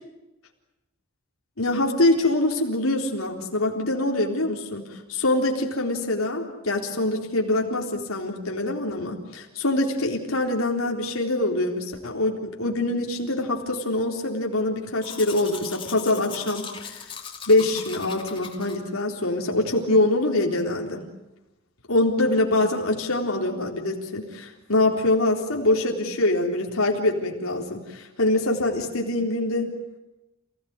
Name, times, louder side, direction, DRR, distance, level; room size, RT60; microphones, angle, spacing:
voice 1, 1.6-17.0 17.5-21.0 21.9-29.7, left 2 dB, 90° left, 1 dB, 3.9 m, -24 dB
Domestic sounds home sounds, 15.0-18.8, left 6 dB, 25° left, 2.9 m, -39 dB
29.0 x 17.5 x 9.7 m, 0.98 s
head